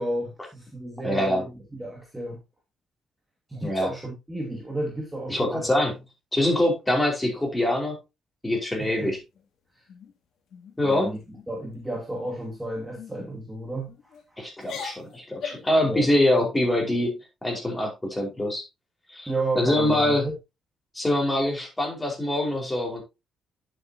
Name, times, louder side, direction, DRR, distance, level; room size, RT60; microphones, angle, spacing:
voice 1, 0.0-2.4 3.5-5.7 8.8-9.2 9.8-9.9 10.8-11.2 11.5-14.1 15.9-16.1 19.3-20.3, right 1 dB, 10° right, 2.5 m, -32 dB
voice 2, 1.0-1.4 3.6-3.9 5.3-5.9 6.3-8.0 8.4-9.2 10.8-11.2 14.4-18.6 19.1-19.3 19.5-20.2 20.9-23.0, left 1 dB, 15° left, 4.9 m, -24 dB
sound 1, 8.8-9.4 9.9-10.1 10.5-10.8 11.1-11.5 12.1-12.5 13.0-13.1 13.9-14.2 14.6-15.8, left 6 dB, 70° left, 2.7 m, -40 dB
10.5 x 7.6 x 2.9 m
cardioid pair, 90°, 0 cm